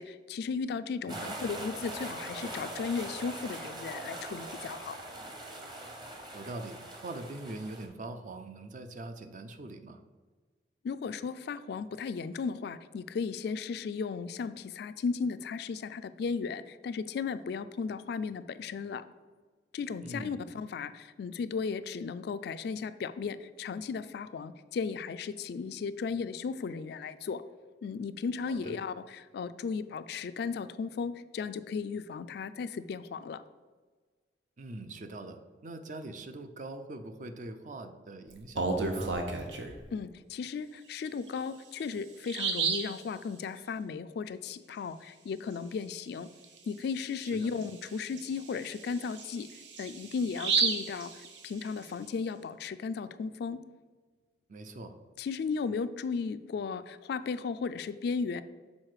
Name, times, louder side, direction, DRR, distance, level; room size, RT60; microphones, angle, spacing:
voice 1, 0.0-5.0 10.8-19.0 19.7-27.4 27.8-33.4 39.9-46.3 46.7-49.5 49.8-53.6 55.2-58.4, left 5 dB, 65° left, 13 dB, 0.3 m, -35 dB
sound 1, 1.1-7.9, right 1 dB, 25° right, 0.9 m, -42 dB
voice 2, 6.3-10.0 20.0-20.4 28.5-28.8 34.6-39.3 47.2-47.5 54.5-54.9, right 2 dB, 45° right, 8 dB, 0.5 m, -43 dB
Bird vocalization bird call bird song, 38.3-39.8 41.3-41.4 41.8-41.9 42.3-43.0 46.4-46.6 47.0-47.1 47.6-51.8, right 4 dB, 90° right, 0.8 m, -32 dB
6.3 x 4.0 x 4.8 m, 1.4 s
head